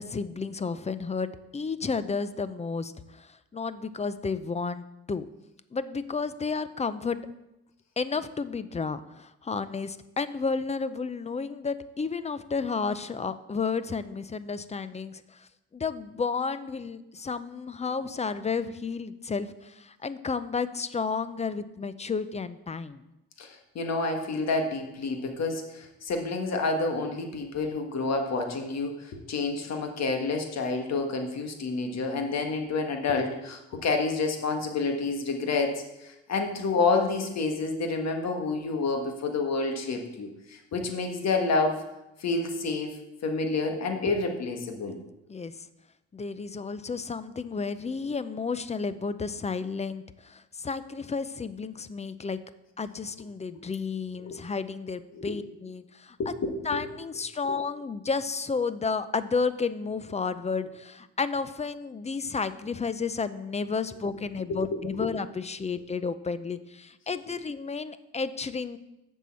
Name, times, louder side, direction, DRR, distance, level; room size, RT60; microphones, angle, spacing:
voice 1, 0.0-2.9 3.2-5.3 5.7-7.2 8.0-15.2 15.7-23.0 45.3-45.5 46.1-52.4 52.8-56.2 56.6-68.8, left 5 dB, 20° left, 14 dB, 0.5 m, -32 dB
voice 2, 23.4-41.8 42.2-45.0 54.2-54.4 55.1-55.4 56.2-56.9 57.4-57.6 64.5-65.1, left 3 dB, 60° left, 4 dB, 1.7 m, -29 dB
7.4 x 5.5 x 7.4 m, 0.93 s
cardioid pair, 90°, 30 cm